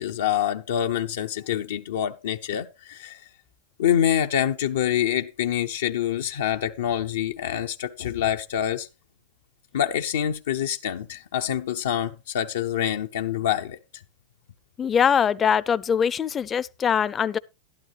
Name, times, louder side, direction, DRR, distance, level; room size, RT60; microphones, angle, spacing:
voice 1, 0.0-3.3 3.8-8.9 9.7-13.8, left 10 dB, 80° left, 0.7 m, -26 dB
voice 2, 14.8-17.4, left 7 dB, 25° left, 0.5 m, -22 dB
12.0 x 11.5 x 3.3 m
hypercardioid pair, 120°, 0 cm